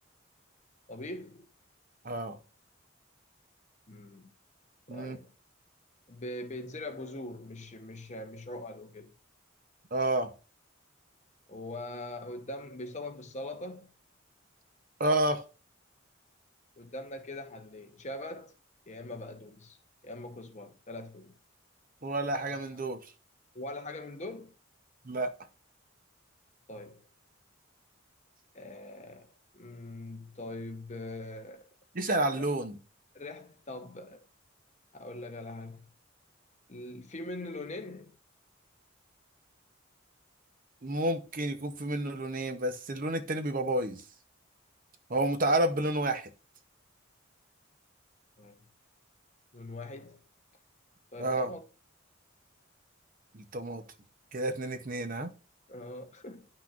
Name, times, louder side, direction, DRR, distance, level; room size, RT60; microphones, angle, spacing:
voice 1, 0.9-1.5 3.9-4.3 4.9-5.3 6.1-9.1 11.5-13.9 16.8-18.5 18.9-19.8 20.0-21.3 22.5-22.6 23.5-24.5 26.7-27.0 28.5-31.7 32.4-32.5 33.1-34.2 34.9-35.9 36.7-38.2 48.4-48.6 49.5-50.2 51.1-51.6 55.7-56.5, left 2 dB, 35° left, 0.9 m, -42 dB
voice 2, 2.0-2.4 4.9-5.2 9.9-10.3 15.0-15.4 22.0-23.0 25.1-25.3 31.9-32.8 40.8-44.0 45.1-46.3 51.2-51.5 53.3-53.8 54.3-55.3, right 1 dB, 40° right, 0.7 m, -30 dB
10.5 x 6.0 x 2.5 m
head